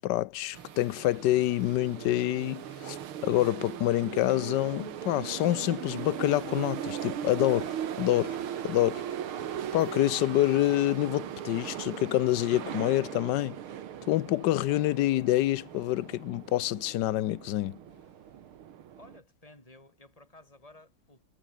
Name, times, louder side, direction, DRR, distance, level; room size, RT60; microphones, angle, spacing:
voice 1, 0.0-3.0 3.2-9.0 9.7-13.6 14.1-17.8, left 15 dB, 70° left, 1.1 m, -27 dB
sound 1, 0.5-19.2, right 10 dB, 80° right, 2.3 m, -39 dB
voice 2, 18.9-21.3, left 2 dB, 15° left, 5.8 m, -54 dB
omnidirectional pair, 2.3 m